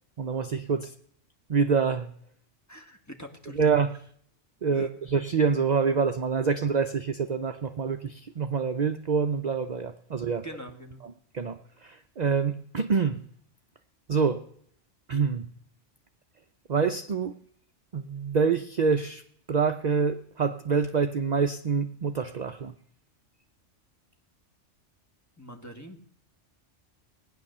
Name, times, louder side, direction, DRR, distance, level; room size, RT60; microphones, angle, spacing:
voice 1, 0.2-0.9 1.5-2.1 3.5-3.9 4.6-10.5 11.3-13.2 14.1-14.4 15.1-15.5 16.7-17.3 17.9-19.2 19.5-22.7, right 5 dB, 45° right, 7 dB, 0.6 m, -26 dB
voice 2, 2.7-3.7 4.7-4.9 10.4-11.0 25.4-26.0, equal, 15° left, 4 dB, 1.5 m, -43 dB
18.5 x 9.8 x 6.6 m, 0.65 s
omnidirectional pair, 1.2 m